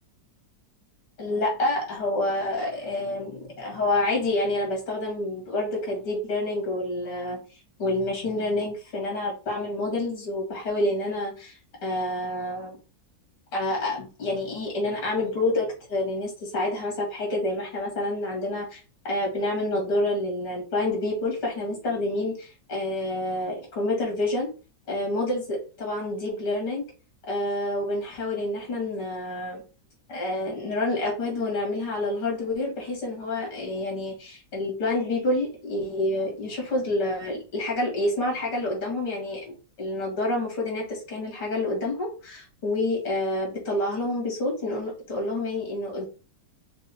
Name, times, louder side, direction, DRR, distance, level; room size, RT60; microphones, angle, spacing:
voice 1, 1.2-7.4 7.8-12.8 13.5-18.8 19.0-24.5 24.9-26.8 27.3-29.6 30.1-46.1, left 1 dB, 70° left, -1 dB, 2.6 m, -28 dB
5.4 x 2.1 x 4.1 m, 0.34 s
omnidirectional pair, 1.9 m